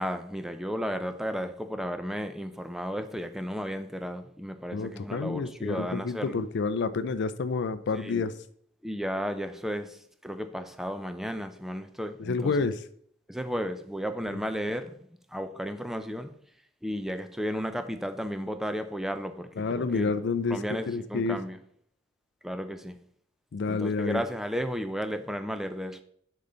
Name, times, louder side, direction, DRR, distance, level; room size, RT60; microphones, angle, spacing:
voice 1, 0.0-6.4 7.9-8.3 8.8-12.7 13.3-15.0 15.3-16.3 16.8-20.1 20.5-21.6 22.4-23.0 23.7-26.0, equal, ahead, 0.5 m, -34 dB
voice 2, 4.7-8.3 12.2-12.8 14.3-14.4 19.6-21.4 23.5-24.2, left 4 dB, 60° left, 0.4 m, -29 dB
6.9 x 5.5 x 3.9 m
head